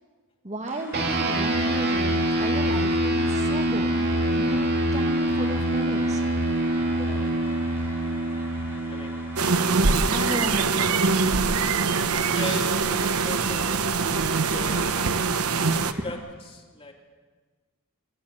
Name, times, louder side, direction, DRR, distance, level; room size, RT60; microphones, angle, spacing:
voice 1, 0.4-4.1 4.3-4.6 4.9-6.2 10.1-11.0 15.8-16.0, right 1 dB, 30° right, 4 dB, 1.9 m, -33 dB
sound 1, 0.7-16.1, left 1 dB, 10° right, 6.6 m, -44 dB
sound 2, 0.9-10.7, right 1 dB, 50° right, 2.5 m, -25 dB
voice 2, 6.9-7.4 8.9-9.1 12.2-15.1 15.7-16.2 16.5-16.9, left 2 dB, 25° left, 1 dB, 3.0 m, -38 dB
sound 3, 9.4-15.9, right 4 dB, 90° right, 1.0 m, -23 dB
23.5 x 14.0 x 9.3 m, 1.4 s
head